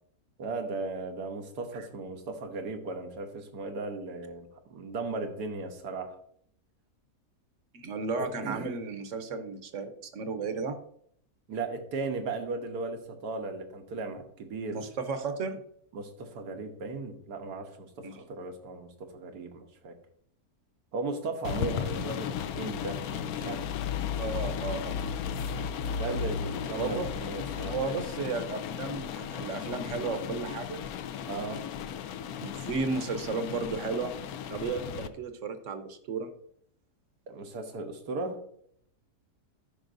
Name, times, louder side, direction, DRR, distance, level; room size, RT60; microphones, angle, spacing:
voice 1, 0.4-6.2 8.2-8.7 11.5-14.8 15.9-20.0 20.9-23.9 25.9-28.1 31.3-31.6 37.3-38.4, right 3 dB, 90° right, 5 dB, 1.6 m, -37 dB
voice 2, 7.7-10.8 14.7-15.6 18.0-18.2 24.2-25.0 26.7-27.1 27.6-30.8 32.4-34.1 34.5-36.3, right 4 dB, 55° right, 8 dB, 1.0 m, -34 dB
sound 1, 21.4-35.1, left 7 dB, 75° left, 1.0 m, -35 dB
12.5 x 5.6 x 2.6 m, 0.67 s
omnidirectional pair, 1.7 m